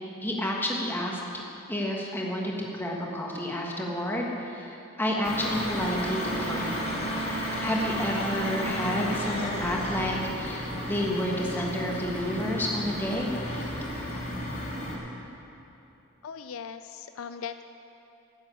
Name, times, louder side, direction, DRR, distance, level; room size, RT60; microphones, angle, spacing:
voice 1, 0.2-1.2 1.7-6.8 7.6-13.3, left 1 dB, 10° left, -2 dB, 1.5 m, -30 dB
sound 1, 5.2-15.0, equal, 40° left, 2.9 m, -32 dB
voice 2, 16.2-17.6, left 7 dB, 70° left, 9 dB, 0.4 m, -39 dB
12.5 x 7.8 x 8.5 m, 3.0 s
head